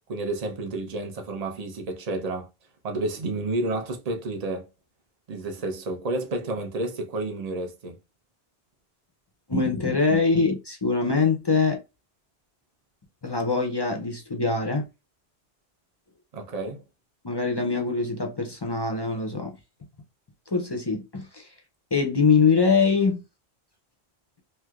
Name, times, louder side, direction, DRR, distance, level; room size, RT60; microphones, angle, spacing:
voice 1, 0.0-2.5 2.8-4.7 5.3-8.0 16.3-16.8, right 2 dB, 40° right, 0.7 m, -30 dB
voice 2, 9.5-11.8 13.2-14.9 17.2-19.6 20.5-21.5 21.9-23.2, left 4 dB, 30° left, 0.5 m, -23 dB
3.2 x 2.8 x 2.3 m
omnidirectional pair, 1.1 m